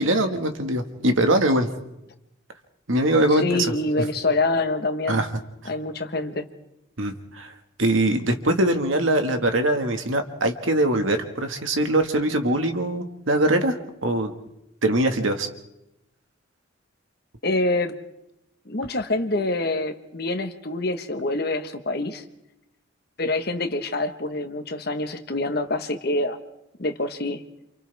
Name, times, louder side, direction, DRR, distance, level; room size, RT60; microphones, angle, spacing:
voice 1, 0.0-1.7 2.9-3.7 5.1-5.3 7.0-7.5 7.8-14.3 14.8-15.5, right 1 dB, 80° right, 6 dB, 1.8 m, -22 dB
voice 2, 3.3-5.2 5.7-6.5 17.4-17.9 18.6-22.2 23.2-26.4 26.8-27.4, left 2 dB, 50° left, 7 dB, 1.3 m, -26 dB
29.0 x 27.5 x 3.5 m, 0.88 s
head